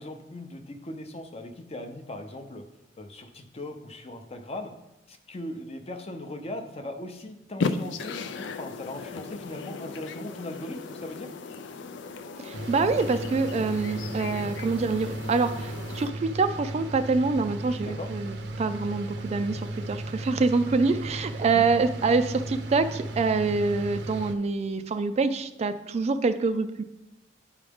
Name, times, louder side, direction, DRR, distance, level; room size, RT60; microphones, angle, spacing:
voice 1, 0.0-2.6 3.0-4.7 5.1-11.3 17.8-18.1 21.4-21.7, left 1 dB, 35° left, 6 dB, 0.7 m, -39 dB
sound 1, 7.6-16.1, left 4 dB, 75° left, 0.4 m, -36 dB
voice 2, 12.4-19.6 19.9-26.8, right 4 dB, 35° right, 10 dB, 0.3 m, -26 dB
sound 2, 12.5-24.3, right 1 dB, 70° right, 0.6 m, -36 dB
9.8 x 4.8 x 3.5 m, 0.94 s
head